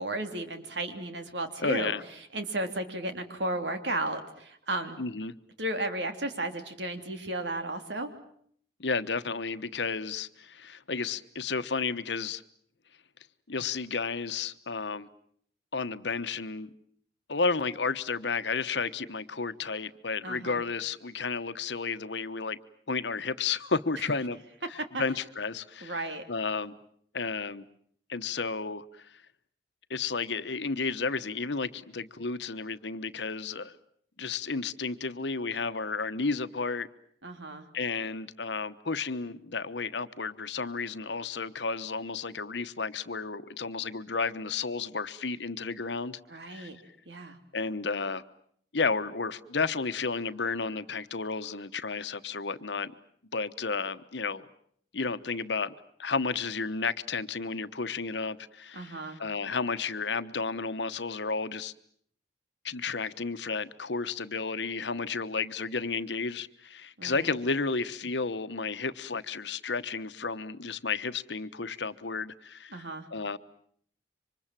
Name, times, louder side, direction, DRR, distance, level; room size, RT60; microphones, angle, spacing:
voice 1, 0.0-1.9 2.3-5.0 5.6-8.1 20.2-20.6 24.9-25.0 25.8-26.2 37.2-37.6 46.3-46.8 47.1-47.4 58.7-59.2 67.0-67.3 72.7-73.1, right 2 dB, 80° right, 3.2 m, -34 dB
voice 2, 1.6-2.0 5.0-5.3 8.8-12.4 13.5-15.1 15.7-16.7 17.3-22.6 22.9-24.4 25.0-26.8 27.1-27.6 28.1-29.1 29.9-33.8 34.2-36.9 37.7-46.2 46.5-46.7 47.5-48.2 48.7-52.9 53.3-54.4 54.9-55.7 56.0-61.7 62.6-73.4, left 4 dB, 80° left, 1.2 m, -32 dB
28.0 x 25.5 x 7.6 m
head